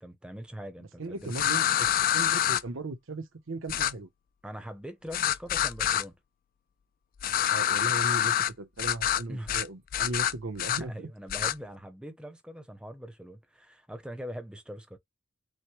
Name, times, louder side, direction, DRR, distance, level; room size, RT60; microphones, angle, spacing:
voice 1, 0.0-1.3 4.4-6.2 9.3-9.6 10.9-15.0, equal, 5° right, 0.7 m, -42 dB
voice 2, 0.8-4.1 7.5-11.1, right 2 dB, 65° right, 0.7 m, -37 dB
sound 1, 1.3-2.6 3.7-3.9 5.1-6.0 7.2-8.5 8.8-9.2 9.5-9.7 9.9-10.8 11.3-11.5, left 11 dB, 40° left, 0.3 m, -26 dB
6.2 x 2.1 x 2.9 m
head